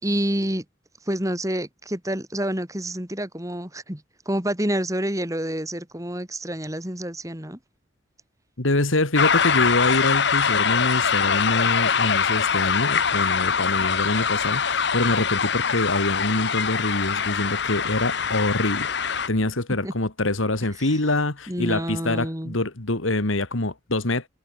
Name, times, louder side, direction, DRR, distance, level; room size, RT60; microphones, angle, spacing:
voice 1, 0.0-0.6 1.0-7.6 19.8-19.9 20.8-21.0 21.5-22.6, right 1 dB, 15° right, 3.3 m, -28 dB
voice 2, 8.6-24.3, left 2 dB, 80° left, 2.5 m, -25 dB
sound 1, 9.1-19.3, left 6 dB, 55° left, 1.0 m, -23 dB
head